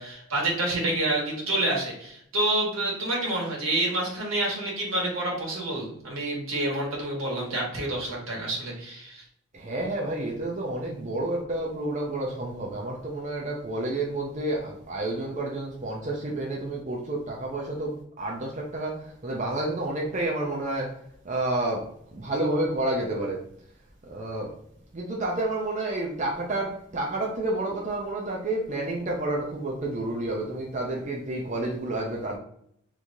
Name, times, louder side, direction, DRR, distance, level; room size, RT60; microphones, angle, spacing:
voice 1, 0.0-9.2, right 1 dB, 80° right, -3 dB, 1.4 m, -28 dB
voice 2, 9.5-21.0 21.2-23.4 24.0-24.5 24.9-32.4, right 2 dB, 35° right, -2 dB, 0.5 m, -30 dB
3.6 x 3.1 x 2.6 m, 0.71 s
head